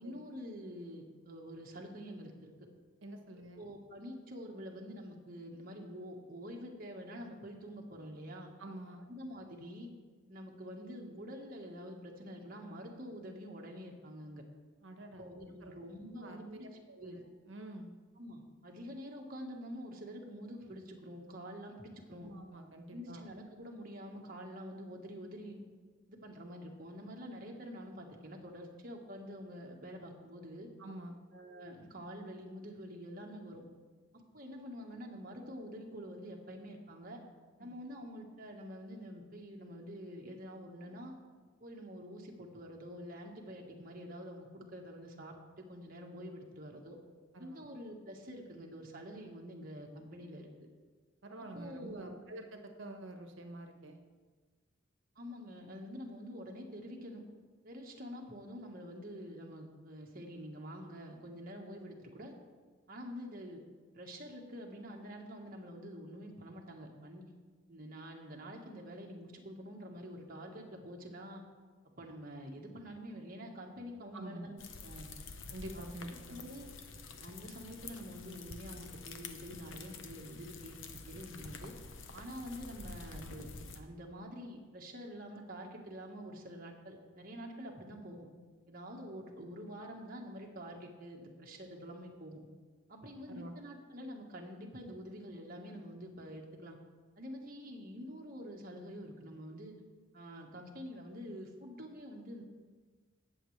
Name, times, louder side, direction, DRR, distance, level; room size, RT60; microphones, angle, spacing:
voice 1, 0.0-2.5 3.5-8.5 9.1-9.9 10.3-14.4 15.2-17.2 18.2-22.3 22.9-25.6 26.1-30.7 31.3-33.6 34.3-37.2 37.6-41.1 41.6-47.0 47.4-50.5 51.5-52.2 55.1-57.2 57.6-62.3 62.9-63.6 63.9-67.3 67.7-71.4 72.0-75.1 75.7-75.8 76.3-76.7 77.2-81.7 82.1-88.3 88.7-92.4 92.9-96.8 97.2-99.7 100.1-102.4, equal, 45° right, 0 dB, 1.4 m, -47 dB
voice 2, 3.0-3.6 8.6-9.0 14.8-15.3 15.6-15.9 16.2-17.2 17.5-17.9 22.2-23.2 30.8-31.2 37.6-37.7 47.3-47.7 51.2-54.0 74.1-74.5 75.5-76.4 93.3-93.5, right 1 dB, 70° right, 4 dB, 1.2 m, -47 dB
sound 1, 74.6-83.8, left 4 dB, 70° left, 0.9 m, -48 dB
19.0 x 7.3 x 3.3 m, 1.4 s
head